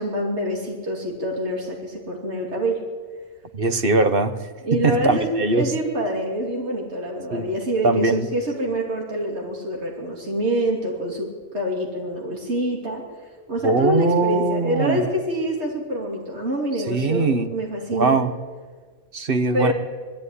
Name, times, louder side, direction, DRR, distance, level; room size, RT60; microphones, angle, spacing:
voice 1, 0.0-2.8 4.6-11.3 11.5-13.0 13.5-18.2 19.5-19.7, equal, 70° right, 0 dB, 3.1 m, -26 dB
voice 2, 3.5-4.4 4.8-5.7 7.3-7.5 7.8-8.3 13.6-15.0 16.9-17.5 17.9-18.3 19.1-19.7, right 3 dB, 50° right, 9 dB, 1.3 m, -21 dB
20.5 x 14.5 x 9.9 m, 1.5 s
omnidirectional pair, 1.2 m